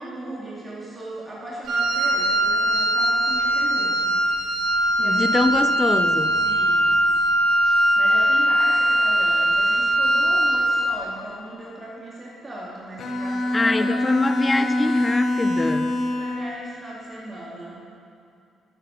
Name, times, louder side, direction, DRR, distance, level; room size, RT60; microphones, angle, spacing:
voice 1, 0.0-4.2 4.6-5.4 6.4-7.0 7.6-13.9 14.2-14.6 15.9-17.8, right 1 dB, 30° right, -6 dB, 2.5 m, -37 dB
Wind instrument woodwind instrument, 1.6-10.9, right 1 dB, 75° right, 2.1 m, -20 dB
voice 2, 5.0-6.3 13.5-15.9, left 2 dB, 20° left, 10 dB, 0.6 m, -23 dB
Bowed string instrument, 13.0-16.6, left 1 dB, 55° left, 1.2 m, -24 dB
11.5 x 9.6 x 5.1 m, 2.5 s
cardioid pair, 90°, 0 cm